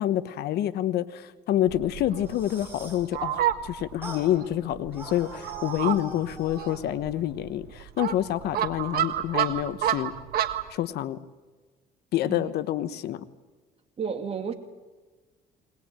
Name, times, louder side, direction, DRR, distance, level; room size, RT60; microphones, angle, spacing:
voice 1, 0.0-10.1 10.7-11.2 12.1-13.2, left 12 dB, 75° left, 14 dB, 1.1 m, -27 dB
Fowl, 1.7-10.7, right 11 dB, 65° right, 1.6 m, -31 dB
sound 1, 2.1-3.1 4.0-4.3 4.9-6.8, right 2 dB, 10° right, 7.9 m, -42 dB
voice 2, 14.0-14.5, right 6 dB, 35° right, 5 dB, 2.5 m, -32 dB
21.0 x 20.0 x 8.9 m, 1.3 s
cardioid pair, 110°, 17 cm